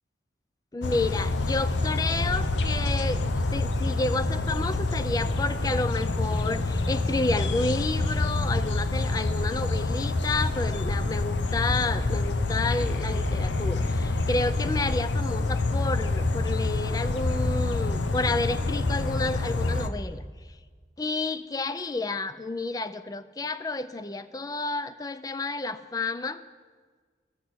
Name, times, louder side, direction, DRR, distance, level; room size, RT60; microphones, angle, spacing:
voice 1, 0.7-20.2 21.0-26.4, left 3 dB, 20° left, 13 dB, 0.4 m, -30 dB
sound 1, 0.8-19.9, left 2 dB, 80° left, 0.7 m, -27 dB
13.5 x 6.1 x 8.4 m, 1.5 s
head